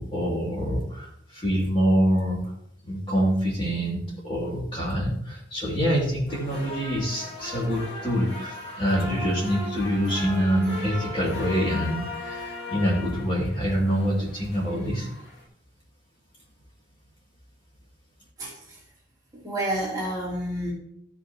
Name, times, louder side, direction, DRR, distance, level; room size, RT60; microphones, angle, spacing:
voice 1, 0.0-2.5 2.8-15.1, equal, 30° left, -4 dB, 2.7 m, -25 dB
sound 1, 6.3-15.5, left 2 dB, 65° left, 2.5 m, -38 dB
voice 2, 18.4-18.8 19.4-20.7, right 1 dB, 20° right, -5 dB, 2.6 m, -29 dB
14.0 x 5.6 x 3.0 m, 0.68 s
head